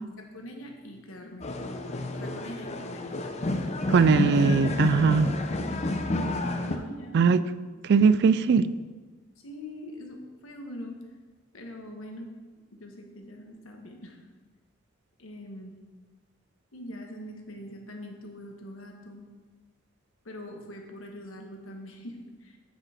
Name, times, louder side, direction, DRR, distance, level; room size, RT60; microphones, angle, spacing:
voice 1, 0.2-3.3 6.6-7.3 7.9-8.1 9.4-11.0 11.5-12.3 12.7-14.2 15.2-15.7 16.7-19.3 20.2-22.6, left 1 dB, 85° left, 2 dB, 1.3 m, -43 dB
sound 1, 1.4-6.8, left 2 dB, 35° left, 0.6 m, -30 dB
voice 2, 3.9-5.4 7.1-7.4 7.8-8.7, right 5 dB, 55° right, 15 dB, 0.3 m, -20 dB
8.0 x 6.0 x 4.3 m, 1.3 s
head